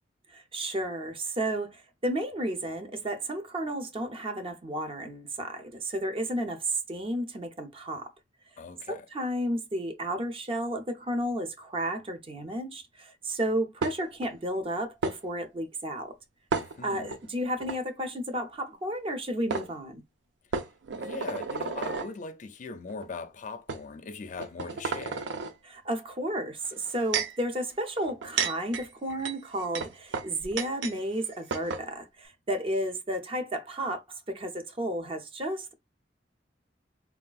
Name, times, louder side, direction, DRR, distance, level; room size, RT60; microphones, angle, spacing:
voice 1, 0.3-8.1 8.9-16.1 16.8-20.0 25.7-34.0 34.3-35.7, right 1 dB, 30° right, 0.5 m, -32 dB
voice 2, 8.6-9.1 16.7-17.2 20.9-25.3, left 4 dB, 45° left, 0.4 m, -40 dB
sound 1, 13.8-14.3 15.0-15.2 16.5-17.2 17.6-17.8 19.1-19.2 19.5-19.7 20.5-22.1 22.9-23.0 23.7-23.8 24.3-25.5 26.6-27.4 28.1-31.0 31.2-31.3 31.5-31.9, right 5 dB, 80° right, 0.4 m, -32 dB
3.5 x 2.3 x 2.3 m
head